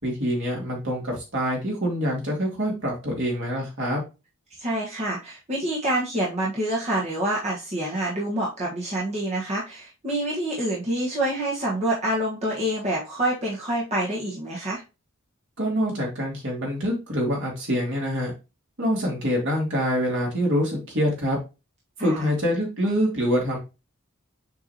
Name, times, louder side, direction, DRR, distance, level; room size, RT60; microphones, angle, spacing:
voice 1, 0.0-4.0 15.6-18.3 18.8-21.4 22.0-23.6, equal, 55° right, -1 dB, 2.8 m, -25 dB
voice 2, 4.6-14.8 22.0-22.3, right 1 dB, 30° right, -5 dB, 1.4 m, -27 dB
6.8 x 4.7 x 2.9 m, 0.28 s
head